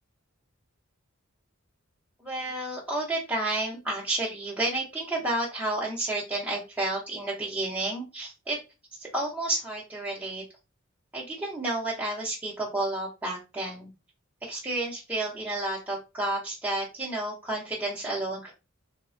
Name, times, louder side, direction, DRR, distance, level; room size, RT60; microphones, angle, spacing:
voice 1, 2.2-8.6 8.9-10.4 11.1-13.9 14.4-18.5, right 2 dB, 10° right, -6 dB, 0.5 m, -31 dB
3.2 x 2.0 x 2.5 m, 0.28 s
head